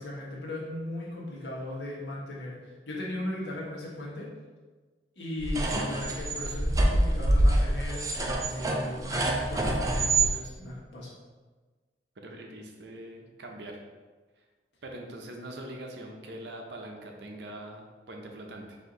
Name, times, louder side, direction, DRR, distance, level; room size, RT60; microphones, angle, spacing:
voice 1, 0.0-4.3 5.2-11.1, left 1 dB, 90° left, -5 dB, 1.3 m, -37 dB
sound 1, 5.4-10.3, right 1 dB, 20° right, 0.4 m, -26 dB
voice 2, 12.2-13.8 14.8-18.8, right 1 dB, 80° right, 2 dB, 0.7 m, -42 dB
4.3 x 2.7 x 3.8 m, 1.3 s
head